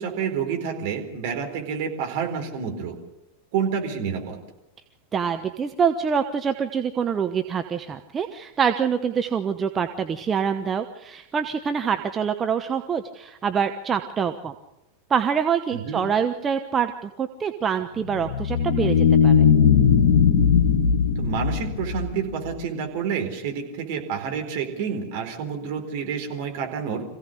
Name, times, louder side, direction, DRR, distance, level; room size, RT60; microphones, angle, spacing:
voice 1, 0.0-3.0 3.5-4.4 15.7-16.0 21.2-27.0, right 7 dB, 50° right, 2 dB, 4.2 m, -29 dB
voice 2, 5.1-14.5 15.1-19.0 19.2-19.5, right 7 dB, 20° right, 6 dB, 1.0 m, -25 dB
sound 1, 18.0-22.6, left 7 dB, 65° left, 1.8 m, -19 dB
26.0 x 16.0 x 6.7 m, 0.94 s
figure-of-eight pair, 90°, 0 cm